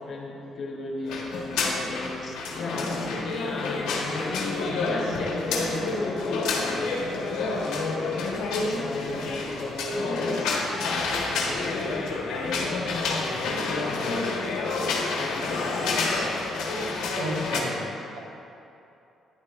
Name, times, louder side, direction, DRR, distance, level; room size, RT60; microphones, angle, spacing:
voice 1, 0.0-7.6 8.5-14.1 15.1-16.0, left 2 dB, 55° left, 0 dB, 1.4 m, -36 dB
sound 1, 1.1-17.6, left 3 dB, 80° left, 1.0 m, -28 dB
voice 2, 17.1-18.2, right 1 dB, 80° right, -1 dB, 1.1 m, -33 dB
10.0 x 8.7 x 2.4 m, 2.8 s
supercardioid pair, 60°, 0 cm